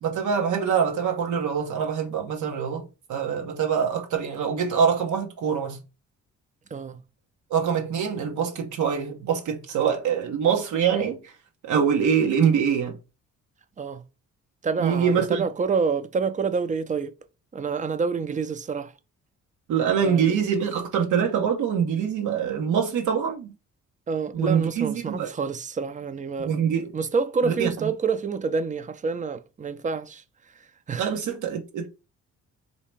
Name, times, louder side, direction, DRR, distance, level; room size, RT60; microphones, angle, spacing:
voice 1, 0.0-5.8 7.5-11.3 11.6-13.0 14.8-15.4 19.7-23.5 24.3-25.3 26.4-26.9 27.4-27.7 31.0-31.9, right 7 dB, 75° right, 0.9 m, -24 dB
voice 2, 14.6-17.1 17.5-18.9 20.0-20.2 24.1-26.6 26.9-30.2 30.5-31.1, right 5 dB, 25° right, 0.5 m, -28 dB
3.2 x 2.8 x 4.5 m
cardioid pair, 90°, 30 cm